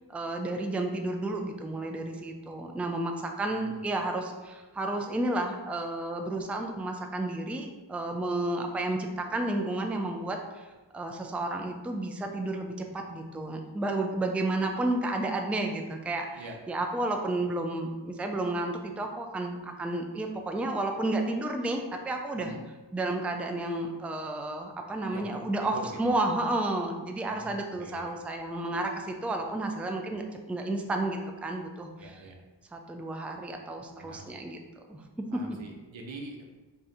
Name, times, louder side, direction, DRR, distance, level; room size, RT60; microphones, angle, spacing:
voice 1, 0.1-10.7 10.9-22.5 22.9-32.2 32.7-34.6 34.9-35.6, right 2 dB, 5° right, 3 dB, 0.3 m, -32 dB
voice 2, 3.5-3.8 16.4-16.6 22.3-22.6 25.1-25.4 25.7-26.1 27.1-28.2 32.0-32.3 34.0-34.4 35.3-36.5, right 2 dB, 85° right, 1 dB, 0.7 m, -44 dB
3.6 x 2.5 x 4.1 m, 1.2 s
wide cardioid pair, 60°, 45 cm